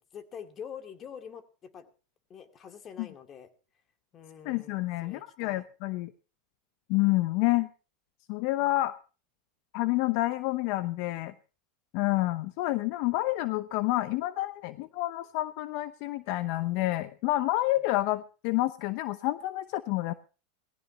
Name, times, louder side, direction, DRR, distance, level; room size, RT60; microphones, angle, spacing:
voice 1, 0.1-1.9 2.3-3.5 4.1-5.7, left 7 dB, 35° left, 8 dB, 2.3 m, -46 dB
voice 2, 4.4-6.1 6.9-7.7 8.3-9.0 9.7-11.3 11.9-20.1, left 18 dB, 60° left, 13 dB, 0.8 m, -28 dB
19.0 x 16.0 x 2.9 m, 0.35 s
supercardioid pair, 120°, 0 cm